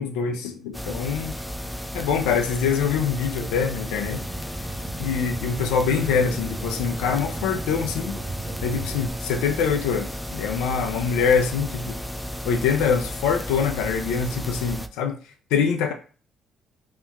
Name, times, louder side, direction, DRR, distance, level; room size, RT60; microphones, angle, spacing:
voice 1, 0.0-1.4 1.9-4.2 5.0-8.2 8.6-12.0 12.5-15.2 15.5-15.9, left 6 dB, 75° left, 0.4 m, -24 dB
sound 1, 0.7-14.9, equal, 5° left, 0.4 m, -33 dB
sound 2, 4.0-9.1, right 3 dB, 35° right, 0.6 m, -38 dB
2.8 x 2.1 x 3.6 m
hypercardioid pair, 50°, 0 cm